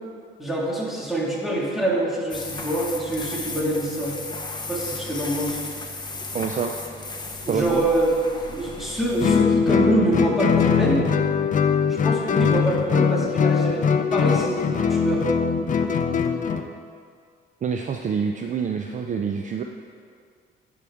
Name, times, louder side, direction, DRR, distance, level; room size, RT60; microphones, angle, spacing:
voice 1, 0.4-4.2 4.7-5.6 7.4-8.1 8.5-11.1 11.9-13.8 14.1-15.2, right 1 dB, ahead, -5 dB, 1.9 m, -25 dB
sound 1, 2.3-9.4, left 3 dB, 20° left, 0.9 m, -35 dB
voice 2, 6.3-6.7 7.5-7.9 17.6-19.6, right 6 dB, 40° right, 3 dB, 0.4 m, -26 dB
Guitar, 9.2-16.7, left 6 dB, 40° left, 0.5 m, -21 dB
11.0 x 5.0 x 3.6 m, 2.2 s
cardioid pair, 90°, 20 cm